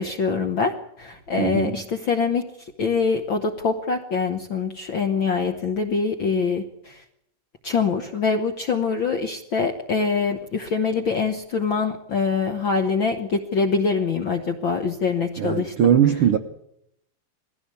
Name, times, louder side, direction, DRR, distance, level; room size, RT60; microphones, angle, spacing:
voice 1, 0.0-2.4 2.8-7.0 7.6-15.7, left 5 dB, 60° left, 5 dB, 1.3 m, -24 dB
voice 2, 1.4-1.8 15.4-16.4, right 9 dB, 65° right, 6 dB, 1.4 m, -20 dB
21.0 x 16.0 x 8.4 m, 0.75 s
omnidirectional pair, 3.7 m